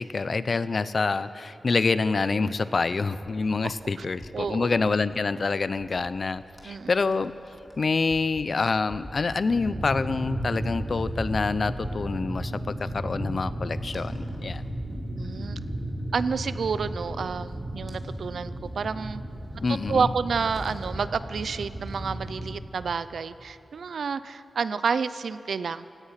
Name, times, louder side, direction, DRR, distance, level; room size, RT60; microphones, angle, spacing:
voice 1, 0.0-7.3 7.8-14.6 19.6-20.1, left 4 dB, 50° left, 14 dB, 0.6 m, -27 dB
sound 1, 3.2-22.5, equal, 5° left, 2.9 m, -47 dB
voice 2, 3.6-4.1 4.3-4.8 6.6-6.9 15.2-15.6 16.1-19.2 19.7-25.8, right 5 dB, 85° right, 14 dB, 0.6 m, -30 dB
sound 2, 9.5-22.5, right 1 dB, 25° right, 4.1 m, -34 dB
28.0 x 17.0 x 5.8 m, 2.7 s
wide cardioid pair, 110°, 0 cm